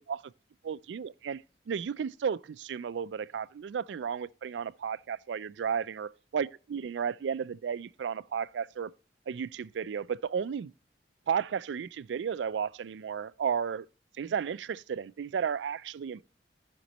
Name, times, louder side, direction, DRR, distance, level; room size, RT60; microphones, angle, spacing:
voice 1, 0.6-1.4 1.7-8.9 9.3-10.7 11.3-13.9 14.2-16.2, right 7 dB, 80° right, 0.3 m, -33 dB
15.0 x 5.2 x 2.9 m
head